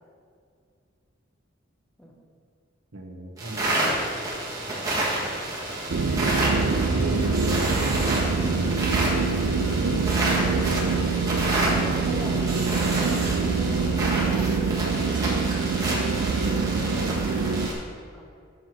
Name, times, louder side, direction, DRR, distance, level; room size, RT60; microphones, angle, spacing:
voice 1, 2.9-3.9 6.1-8.7 16.3-16.6, right 2 dB, 85° right, 3 dB, 1.0 m, -36 dB
sound 1, 3.4-17.7, right 1 dB, 20° right, 1.5 m, -29 dB
sound 2, 5.9-17.7, right 4 dB, 70° right, 0.4 m, -25 dB
voice 2, 6.2-6.6 11.7-12.5 13.5-15.1 16.5-18.2, equal, 5° left, -1 dB, 0.9 m, -42 dB
6.4 x 6.1 x 6.2 m, 2.3 s
head